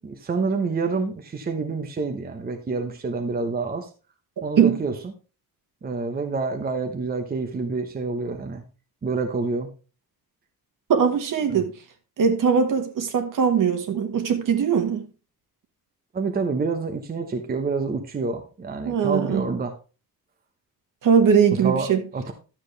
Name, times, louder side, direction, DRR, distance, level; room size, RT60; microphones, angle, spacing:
voice 1, 0.0-3.9 4.4-4.9 5.8-8.6 9.0-9.7 16.1-19.7 21.6-21.9 22.1-22.3, right 4 dB, 25° right, 1.0 m, -27 dB
voice 2, 10.9-11.7 12.2-15.1 18.8-19.4 21.0-22.0, right 7 dB, 60° right, 1.7 m, -20 dB
12.0 x 7.5 x 3.3 m
wide cardioid pair, 170°, 37 cm